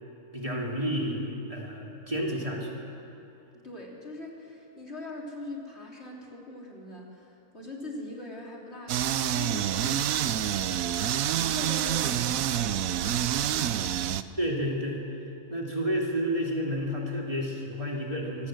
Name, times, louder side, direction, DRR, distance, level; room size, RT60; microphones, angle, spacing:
voice 1, 0.3-2.7 14.4-15.0 15.5-18.5, equal, 25° right, -2 dB, 2.8 m, -30 dB
voice 2, 3.6-10.8 11.3-14.1, left 2 dB, 50° left, -2 dB, 3.6 m, -42 dB
sound 1, 8.9-14.2, right 10 dB, 90° right, 1.1 m, -27 dB
25.0 x 18.0 x 7.7 m, 2.9 s
omnidirectional pair, 1.4 m